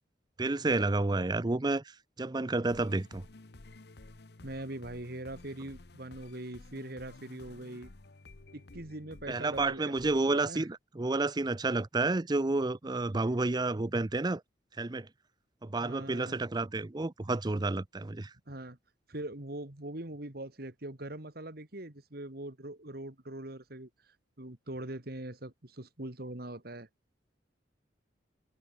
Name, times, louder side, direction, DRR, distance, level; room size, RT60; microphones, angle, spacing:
voice 1, 0.4-3.2 9.3-14.4 14.8-15.1 15.6-18.3, right 2 dB, 25° right, 0.6 m, -30 dB
sound 1, 2.7-10.4, left 2 dB, 65° left, 1.1 m, -53 dB
voice 2, 4.4-7.9 8.5-10.7 15.8-16.4 18.5-18.8 19.1-23.9 24.4-26.9, right 1 dB, 55° right, 2.4 m, -42 dB
head